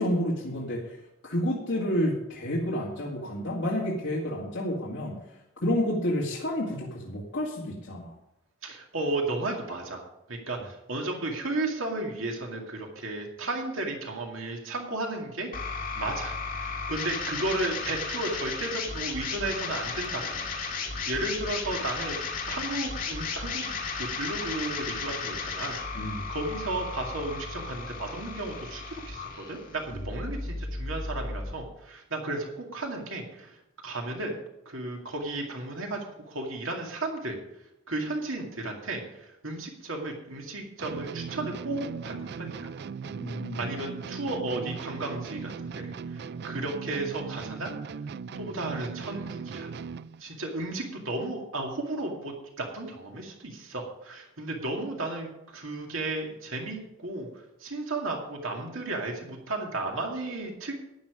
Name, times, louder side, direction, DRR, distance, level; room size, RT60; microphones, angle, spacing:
voice 1, 0.0-8.1 25.9-26.3 29.9-30.0 43.1-43.6, equal, 60° left, -5 dB, 2.3 m, -30 dB
voice 2, 8.6-10.0 10.3-22.2 22.5-33.6 33.8-34.4 34.7-37.4 37.9-42.7 43.6-47.7 48.4-49.7 50.2-57.3 57.6-60.7, right 2 dB, 75° right, 1 dB, 2.3 m, -34 dB
sound 1, 15.5-31.5, left 4 dB, 40° left, 2.1 m, -34 dB
sound 2, 40.8-50.2, right 5 dB, 50° right, 0.4 m, -38 dB
11.5 x 10.5 x 5.1 m, 0.86 s
head